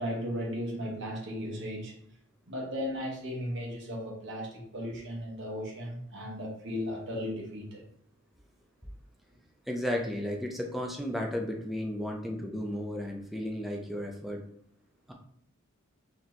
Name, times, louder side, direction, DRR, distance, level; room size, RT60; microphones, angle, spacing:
voice 1, 0.0-1.9 2.5-7.8, equal, 60° right, -2 dB, 1.2 m, -36 dB
voice 2, 9.7-14.4 15.1-15.2, left 1 dB, ahead, 1 dB, 0.5 m, -34 dB
4.1 x 2.9 x 3.2 m, 0.66 s
head